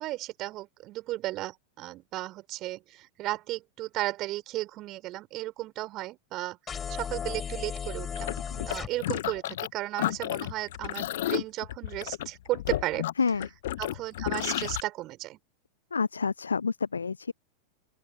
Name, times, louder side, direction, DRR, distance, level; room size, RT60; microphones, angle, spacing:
voice 1, 0.0-8.4 8.7-13.1 13.8-15.4, right 17 dB, 35° right, 6.3 m, -34 dB
sound 1, 6.7-8.9, left 7 dB, 20° left, 4.8 m, -35 dB
sound 2, 8.2-9.7 10.0-14.8, left 14 dB, 55° left, 1.1 m, -32 dB
voice 2, 15.9-17.3, left 5 dB, 75° left, 0.3 m, -28 dB
open air
figure-of-eight pair, 90°, 0 cm